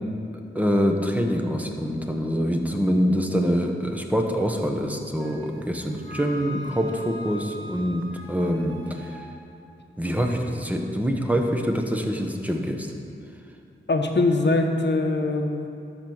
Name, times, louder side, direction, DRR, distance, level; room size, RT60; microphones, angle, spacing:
voice 1, 0.5-9.0 10.0-12.9, equal, 5° right, 2 dB, 1.0 m, -25 dB
Wind instrument woodwind instrument, 5.2-9.3, left 1 dB, 75° right, 1.3 m, -42 dB
voice 2, 13.9-15.7, left 2 dB, 55° left, 4 dB, 1.0 m, -22 dB
13.0 x 4.5 x 6.4 m, 2.6 s
wide cardioid pair, 80°, 21 cm